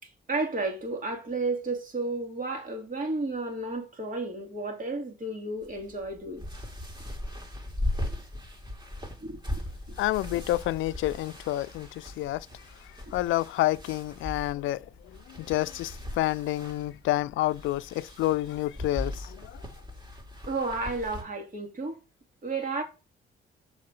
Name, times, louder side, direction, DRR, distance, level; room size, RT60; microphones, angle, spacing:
voice 1, 0.0-6.4 9.2-9.4 20.5-22.0 22.4-22.8, right 3 dB, 40° right, 2.9 m, -32 dB
sound 1, 5.6-21.2, left 1 dB, 20° right, 2.7 m, -39 dB
voice 2, 10.0-12.5 13.1-14.9 15.3-19.6, left 16 dB, 85° left, 0.5 m, -29 dB
6.7 x 5.1 x 5.4 m
cardioid pair, 90°, 20 cm